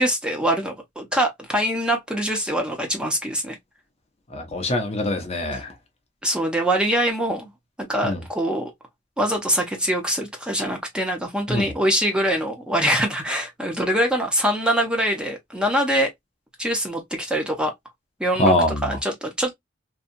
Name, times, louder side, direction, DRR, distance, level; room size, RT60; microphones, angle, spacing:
voice 1, 0.0-3.6 6.2-7.5 7.8-8.7 9.2-16.1 16.6-17.7 18.2-18.5 18.8-19.5, equal, 5° right, 0.7 m, -23 dB
voice 2, 4.3-5.7 8.0-8.2 11.5-11.7 18.4-19.0, left 1 dB, 35° left, 0.6 m, -23 dB
2.7 x 2.3 x 2.4 m
head